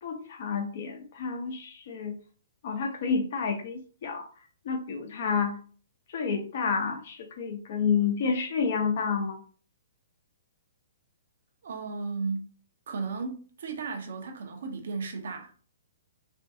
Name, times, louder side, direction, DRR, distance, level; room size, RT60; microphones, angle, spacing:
voice 1, 0.0-2.1 2.6-4.2 4.6-5.6 6.1-9.4, left 5 dB, 55° left, 0.7 m, -29 dB
voice 2, 11.6-12.6 12.9-15.5, right 4 dB, 65° right, 0.6 m, -35 dB
2.5 x 2.2 x 2.6 m
hypercardioid pair, 125°, 0 cm